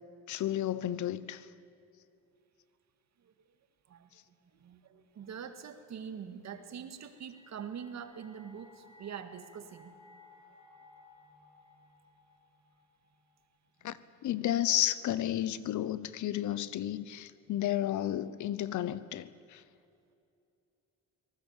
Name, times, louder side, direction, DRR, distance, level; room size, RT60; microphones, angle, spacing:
voice 1, 0.3-1.4 13.8-14.0 14.2-19.6, left 12 dB, 75° left, 1.0 m, -32 dB
voice 2, 4.5-10.0 10.4-10.6 13.8-14.0, right 7 dB, 60° right, 1.9 m, -44 dB
sound 1, 6.7-13.9, left 3 dB, 15° right, 6.5 m, -60 dB
23.5 x 19.0 x 7.4 m
cardioid pair, 90°, 30 cm